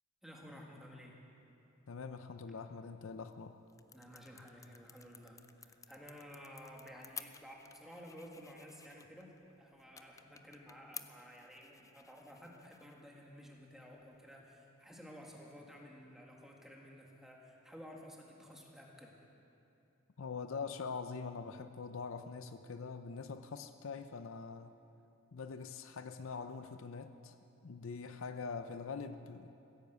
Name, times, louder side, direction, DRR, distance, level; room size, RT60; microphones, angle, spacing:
voice 1, 0.2-1.2 2.5-2.6 3.9-9.3 9.6-19.1, equal, ahead, -2 dB, 1.8 m, -53 dB
voice 2, 1.9-3.6 20.2-24.7 25.3-27.4 27.6-29.6, left 5 dB, 65° left, 9 dB, 0.5 m, -44 dB
sound 1, 3.1-14.6, left 6 dB, 15° left, 0.4 m, -55 dB
15.5 x 10.5 x 8.0 m, 2.8 s
head